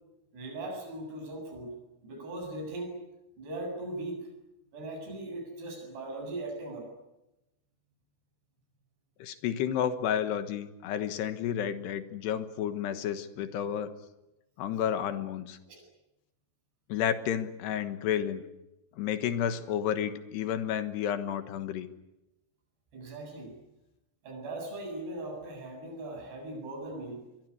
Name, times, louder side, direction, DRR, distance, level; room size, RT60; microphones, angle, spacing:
voice 1, 0.3-1.8 2.0-3.0 3.4-4.3 4.7-6.9 15.7-15.8 22.9-23.6 24.2-27.2, right 2 dB, 60° right, 3 dB, 9.7 m, -39 dB
voice 2, 9.2-13.9 14.6-15.6 16.9-18.4 19.0-21.9, left 9 dB, 70° left, 10 dB, 3.2 m, -31 dB
23.5 x 23.0 x 10.0 m, 0.95 s
omnidirectional pair, 5.5 m